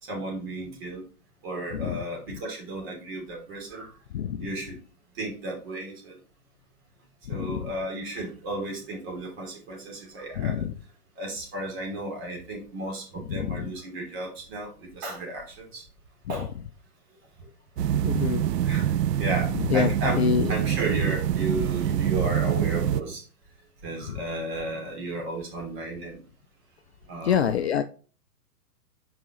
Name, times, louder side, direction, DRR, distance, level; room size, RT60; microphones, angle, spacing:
voice 1, 0.0-1.0 1.4-3.9 4.4-4.7 5.2-6.2 7.3-10.6 11.2-15.8 16.3-16.5 18.6-18.9 19.2-20.2 20.5-23.2 23.8-26.2 27.1-27.5, right 2 dB, 40° right, -1 dB, 3.2 m, -34 dB
voice 2, 1.7-2.0 4.1-4.5 7.3-7.7 10.4-10.7 13.3-13.7 16.4-16.5 18.0-18.4 19.5-20.5 24.1-24.2 27.2-27.8, left 8 dB, 45° left, 9 dB, 0.5 m, -26 dB
sound 1, 17.8-23.0, right 10 dB, 80° right, 0.6 m, -25 dB
6.0 x 4.9 x 3.9 m, 0.37 s
hypercardioid pair, 140°, 48 cm